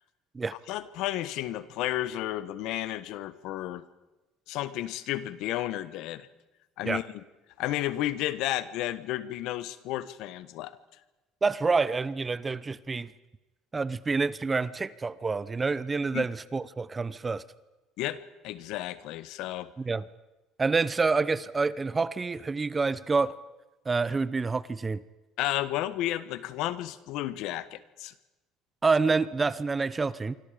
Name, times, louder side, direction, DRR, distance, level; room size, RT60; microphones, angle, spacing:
voice 1, 0.7-3.8 4.5-6.3 6.8-7.2 7.6-10.8 16.1-16.2 18.0-19.7 25.4-28.1, left 14 dB, 70° left, 14 dB, 1.3 m, -32 dB
voice 2, 11.4-13.1 13.7-17.4 19.8-20.0 20.6-23.3 23.8-25.0 28.8-30.4, right 4 dB, 20° right, 17 dB, 0.8 m, -27 dB
27.0 x 25.0 x 5.2 m, 1.1 s
cardioid pair, 130°, 0 cm